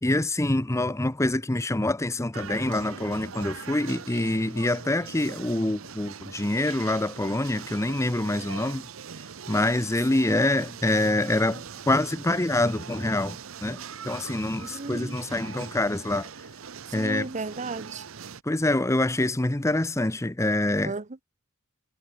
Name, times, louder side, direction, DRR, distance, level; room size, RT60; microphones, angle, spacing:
voice 1, 0.0-8.8 9.5-13.8 14.0-16.3 16.9-17.3 18.5-20.9, left 1 dB, 15° left, 0.8 m, -26 dB
sound 1, 2.3-18.4, right 7 dB, 75° right, 0.9 m, -41 dB
voice 2, 14.6-15.2 17.0-18.0 20.8-21.2, right 3 dB, 35° right, 0.9 m, -34 dB
head